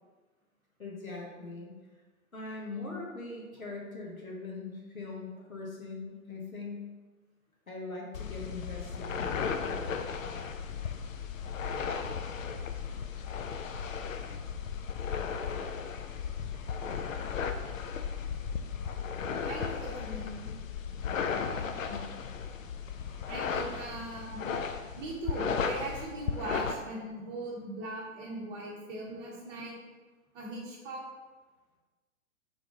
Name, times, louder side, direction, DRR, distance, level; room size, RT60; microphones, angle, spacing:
voice 1, 0.8-1.7 2.3-6.8 7.7-10.1 21.8-22.2, left 3 dB, 85° left, -2 dB, 1.2 m, -41 dB
sound 1, 8.1-26.7, left 6 dB, 70° left, 0.5 m, -35 dB
voice 2, 19.4-20.5 23.2-24.5 25.0-29.8 30.3-31.0, right 2 dB, 25° right, -6 dB, 0.9 m, -40 dB
3.6 x 3.5 x 3.7 m, 1.3 s
figure-of-eight pair, 110°, 41 cm